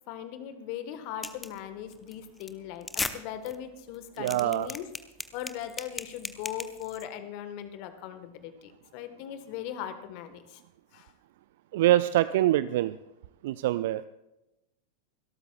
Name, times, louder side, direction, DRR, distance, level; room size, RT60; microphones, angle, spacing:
voice 1, 0.1-4.9 5.3-10.6 10.9-11.1, left 10 dB, 45° left, 10 dB, 1.4 m, -39 dB
sound 1, 1.2-1.6 1.9-2.1 2.4-2.5 2.8-3.1 3.5-3.6 3.9-7.0, left 3 dB, 10° left, 0.9 m, -35 dB
voice 2, 4.2-4.7 11.7-12.9 13.4-14.0, right 14 dB, 55° right, 15 dB, 0.4 m, -24 dB
29.5 x 13.0 x 2.4 m, 0.94 s
figure-of-eight pair, 90°, 0 cm